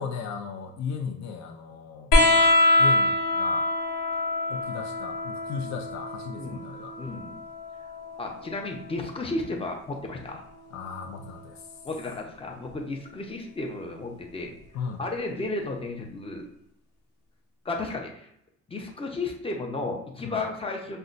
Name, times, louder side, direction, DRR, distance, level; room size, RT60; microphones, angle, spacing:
voice 1, 0.0-2.1 2.8-3.7 4.5-6.9 10.7-11.6 14.7-15.0 20.2-20.4, left 6 dB, 65° left, 4 dB, 0.5 m, -36 dB
sound 1, 2.1-9.2 10.6-11.4 12.7-12.8, left 2 dB, 85° left, 0.9 m, -25 dB
voice 2, 7.0-7.4 8.2-10.4 11.8-14.5 15.0-16.4 17.6-18.3 18.7-21.0, left 2 dB, 20° left, 1 dB, 0.7 m, -33 dB
5.2 x 2.2 x 2.5 m, 0.75 s
cardioid pair, 90°, 30 cm